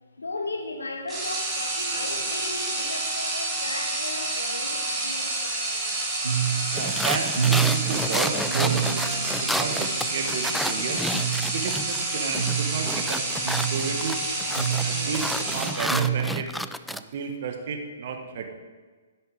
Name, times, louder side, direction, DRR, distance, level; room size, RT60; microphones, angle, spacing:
voice 1, 0.2-6.0, left 2 dB, 75° left, 3 dB, 1.7 m, -36 dB
sound 1, 1.1-16.1, right 2 dB, 15° right, 3.4 m, -29 dB
sound 2, 6.2-16.4, right 8 dB, 70° right, 1.0 m, -30 dB
voice 2, 6.7-11.0 11.5-14.2 14.8-18.5, right 5 dB, 50° right, 5 dB, 1.6 m, -33 dB
sound 3, 6.8-12.0 12.3-17.0, equal, ahead, 0.3 m, -31 dB
12.0 x 10.5 x 3.6 m, 1.4 s
figure-of-eight pair, 120°, 0 cm